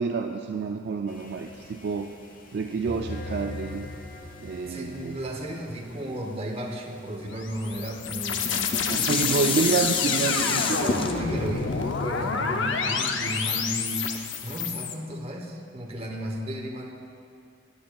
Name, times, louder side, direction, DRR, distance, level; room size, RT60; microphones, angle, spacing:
voice 1, 0.0-2.1 2.5-3.9 4.4-5.2 8.9-11.0, right 5 dB, 55° right, 4 dB, 0.3 m, -28 dB
sound 1, 1.1-13.5, left 2 dB, 45° left, 0.9 m, -41 dB
voice 2, 4.7-8.9 10.8-16.9, right 1 dB, 30° right, 1 dB, 0.9 m, -34 dB
sound 2, 7.3-14.9, left 5 dB, 65° left, 0.6 m, -29 dB
Dishes pots and pans, 8.3-13.6 14.1-14.2, left 5 dB, 25° left, 0.3 m, -29 dB
13.5 x 10.0 x 2.3 m, 2.3 s
head